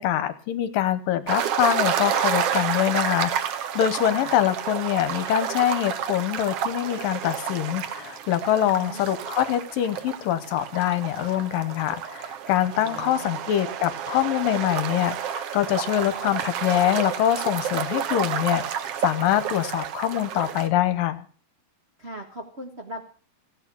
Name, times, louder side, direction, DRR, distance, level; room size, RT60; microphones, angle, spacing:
voice 1, 0.0-21.3, left 12 dB, 75° left, 13 dB, 2.7 m, -24 dB
sound 1, 1.3-20.7, right 9 dB, 80° right, 1.3 m, -30 dB
voice 2, 8.6-9.0 12.7-13.4 22.0-23.1, right 1 dB, 50° right, 1 dB, 0.7 m, -39 dB
16.0 x 8.9 x 6.9 m, 0.42 s
omnidirectional pair, 4.1 m